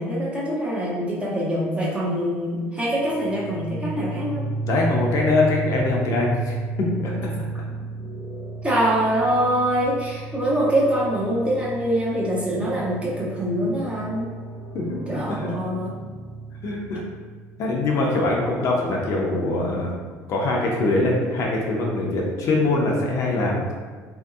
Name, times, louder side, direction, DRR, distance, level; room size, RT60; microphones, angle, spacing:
voice 1, 0.0-4.5 8.6-14.3 15.1-15.9, equal, 15° right, -5 dB, 0.7 m, -24 dB
sound 1, 3.0-17.6, right 3 dB, 85° right, 0.8 m, -33 dB
voice 2, 4.6-7.3 14.7-15.0 15.3-15.5 16.6-17.0 17.6-19.9 20.3-23.7, left 2 dB, 55° left, -2 dB, 0.6 m, -23 dB
2.8 x 2.7 x 2.4 m, 1.5 s
cardioid pair, 110°, 7 cm